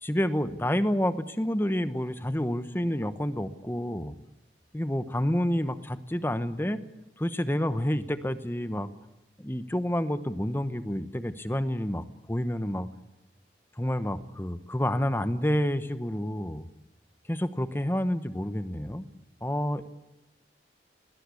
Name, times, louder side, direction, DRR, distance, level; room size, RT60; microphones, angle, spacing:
voice 1, 0.0-4.1 4.7-6.8 7.2-8.9 9.4-12.9 13.8-16.7 17.3-19.1 19.4-19.8, equal, 10° left, 12 dB, 1.0 m, -29 dB
20.0 x 19.0 x 8.4 m, 0.92 s
head